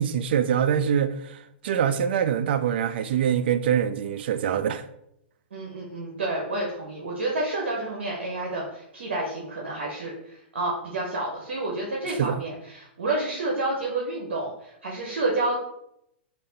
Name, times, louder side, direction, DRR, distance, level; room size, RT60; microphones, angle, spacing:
voice 1, 0.0-4.8 12.2-12.4, right 8 dB, 65° right, 0.3 m, -24 dB
voice 2, 5.5-15.5, right 2 dB, 85° right, 0.8 m, -29 dB
3.2 x 2.5 x 3.9 m
hypercardioid pair, 125°, 6 cm